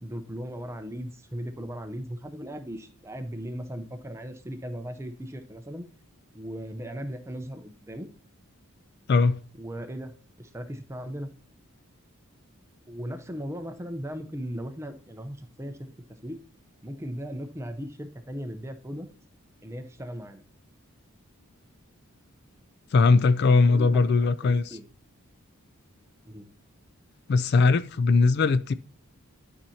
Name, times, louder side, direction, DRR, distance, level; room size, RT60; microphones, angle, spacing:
voice 1, 0.0-5.9 6.3-8.1 9.6-10.1 10.4-11.3 12.9-15.9 16.2-16.4 16.8-19.1 19.6-20.4 23.4-24.9 26.2-26.5, equal, 10° right, 0.6 m, -37 dB
voice 2, 9.1-9.4 22.9-24.8 27.3-28.7, left 4 dB, 50° left, 0.3 m, -20 dB
12.0 x 5.8 x 2.8 m
head